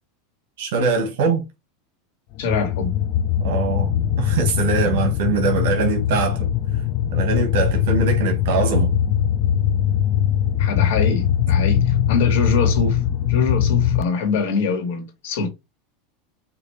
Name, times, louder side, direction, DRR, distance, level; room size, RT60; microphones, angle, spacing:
voice 1, 0.6-1.4 3.4-6.5 7.1-8.9, right 5 dB, 70° right, 1.2 m, -22 dB
voice 2, 2.4-2.9 10.6-13.0 13.3-15.5, left 4 dB, 70° left, 1.9 m, -24 dB
sound 1, 2.4-14.0, left 10 dB, 40° left, 0.3 m, -21 dB
5.2 x 2.8 x 3.1 m
supercardioid pair, 165°, 0 cm